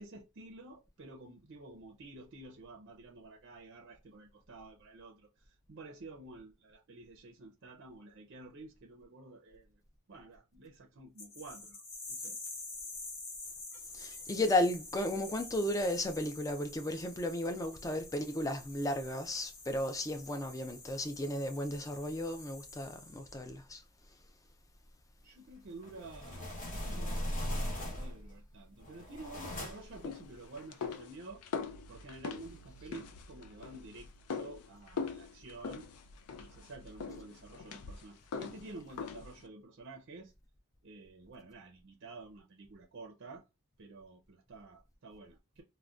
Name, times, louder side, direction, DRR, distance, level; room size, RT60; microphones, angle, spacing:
voice 1, 0.0-9.8 10.1-11.8 12.1-12.4 25.2-27.2 27.5-31.4 31.9-35.9 36.4-40.3 40.8-43.5 43.8-45.6, right 2 dB, 55° right, 0.5 m, -51 dB
sound 1, 11.2-23.5, left 3 dB, 60° left, 1.1 m, -48 dB
voice 2, 13.9-23.8, left 1 dB, 15° left, 0.3 m, -34 dB
sound 2, 25.8-28.3 28.8-30.0, equal, 35° left, 0.8 m, -38 dB
sound 3, 29.7-39.5, left 5 dB, 85° left, 0.4 m, -43 dB
3.7 x 2.1 x 2.3 m
head